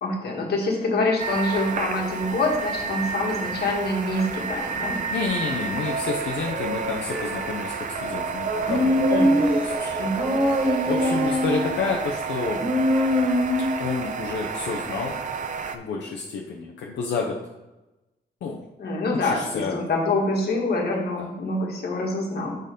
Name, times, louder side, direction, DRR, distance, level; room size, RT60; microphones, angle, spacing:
voice 1, 0.0-5.0 9.1-9.3 10.0-10.4 18.8-22.6, left 2 dB, 65° left, -1 dB, 1.7 m, -26 dB
sound 1, 1.2-15.8, right 5 dB, 45° right, 0.5 m, -31 dB
sound 2, 4.7-11.7, right 4 dB, 80° right, 0.8 m, -34 dB
voice 2, 5.1-9.1 9.5-9.9 10.9-12.6 13.8-15.2 15.7-17.4 18.4-18.6 19.1-19.8 21.2-21.3, left 4 dB, 85° left, -1 dB, 0.8 m, -29 dB
Human voice, 8.7-9.6 10.2-11.7 12.6-13.9, left 1 dB, 30° right, 1.4 m, -22 dB
6.5 x 3.9 x 5.2 m, 1.0 s
wide cardioid pair, 130°, 18 cm